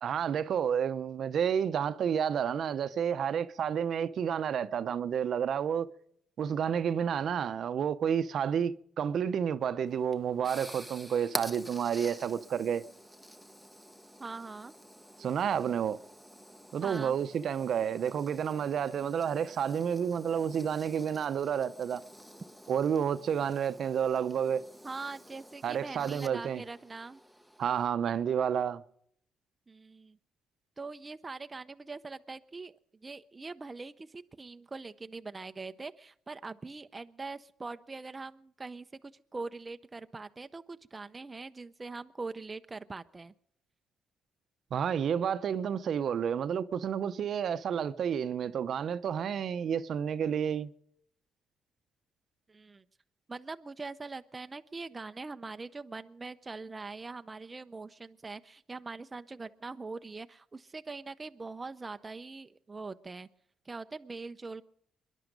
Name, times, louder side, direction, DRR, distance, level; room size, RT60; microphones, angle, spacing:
voice 1, 0.0-5.9 6.4-12.9 15.2-16.0 16.7-22.0 22.7-24.7 25.6-26.6 27.6-28.8 44.7-50.7, right 8 dB, 60° right, 0.7 m, -30 dB
sound 1, 9.9-27.9, equal, 5° left, 0.9 m, -48 dB
voice 2, 14.2-14.7 16.8-17.2 24.8-27.2 29.7-30.2 30.8-43.3 52.5-52.8 53.3-63.3 63.7-64.6, right 3 dB, 25° right, 0.5 m, -42 dB
24.0 x 11.0 x 5.2 m
cardioid pair, 90°, 0 cm